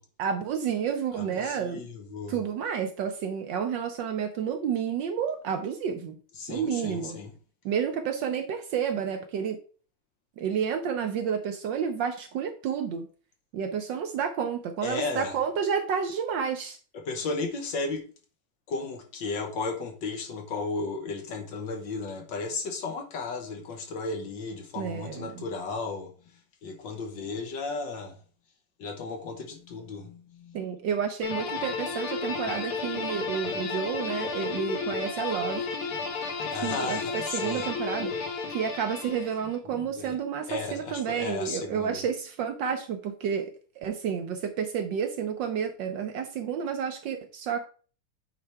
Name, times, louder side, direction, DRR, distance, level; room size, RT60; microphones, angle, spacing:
voice 1, 0.2-1.8 2.3-6.2 6.5-7.2 7.6-9.6 10.4-13.0 13.5-16.8 24.8-25.4 30.5-35.6 36.6-37.0 37.3-38.1 38.5-47.7, right 7 dB, 70° right, 1.2 m, -30 dB
voice 2, 1.1-2.4 6.4-7.3 14.8-15.3 16.9-18.0 18.7-26.1 26.6-28.2 28.8-30.6 36.5-37.7 39.6-40.2 40.5-42.0, left 3 dB, 60° left, 1.6 m, -34 dB
sound 1, 31.2-39.6, left 4 dB, 80° left, 2.2 m, -33 dB
8.6 x 4.5 x 3.4 m
omnidirectional pair, 2.4 m